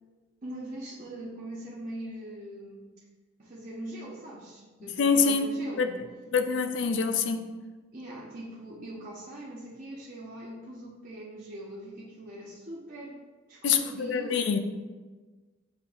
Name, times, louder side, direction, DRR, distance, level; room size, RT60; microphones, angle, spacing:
voice 1, 0.4-2.9 3.4-6.0 7.9-13.2 13.5-14.6, right 1 dB, 45° right, 0.6 m, -42 dB
voice 2, 5.0-5.9 6.3-7.6 13.6-14.6, left 5 dB, 65° left, 0.4 m, -26 dB
6.8 x 2.8 x 2.3 m
head